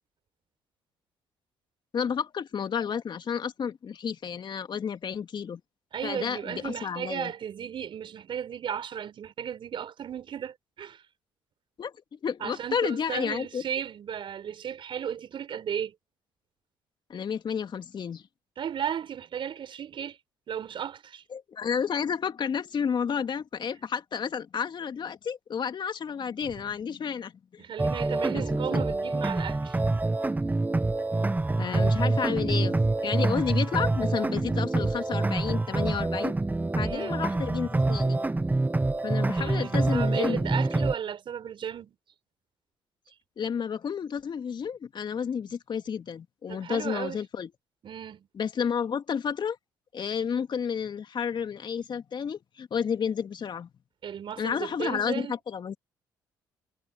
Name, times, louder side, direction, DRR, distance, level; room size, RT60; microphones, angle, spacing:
voice 1, 1.9-5.6 6.0-7.3 11.8-11.9 12.2-13.6 17.1-18.2 21.3-27.6 28.3-28.4 28.7-28.9 31.6-36.4 36.8-38.3 39.0-40.5 40.7-40.9 43.4-47.5 48.3-49.6 49.9-53.7 54.4-55.8, left 7 dB, 50° left, 2.4 m, -31 dB
voice 2, 5.9-11.0 12.4-15.9 18.6-20.2 20.5-21.2 26.4-26.5 27.6-29.8 36.8-37.2 39.4-42.0 46.5-47.2 47.8-48.3 54.0-55.4, right 8 dB, 55° right, 4.5 m, -35 dB
sound 1, 27.8-41.0, right 2 dB, 15° right, 1.2 m, -26 dB
hypercardioid pair, 55°, 10 cm